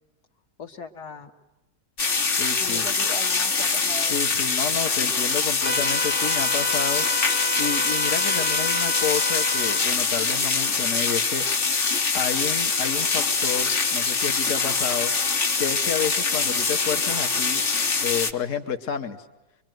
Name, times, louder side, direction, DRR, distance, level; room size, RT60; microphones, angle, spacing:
voice 1, 0.6-1.3 2.6-4.2, left 4 dB, 80° left, 4 dB, 2.2 m, -38 dB
sound 1, 2.0-18.3, left 4 dB, 40° left, 1.1 m, -24 dB
voice 2, 2.3-2.8 4.1-7.1 7.6-11.4 12.1-15.1 15.6-17.6 18.0-19.3, left 7 dB, 55° left, 4 dB, 1.4 m, -30 dB
sound 2, 5.6-9.8, left 1 dB, 10° left, 0.6 m, -29 dB
24.5 x 23.5 x 9.1 m, 1.0 s
omnidirectional pair, 1.7 m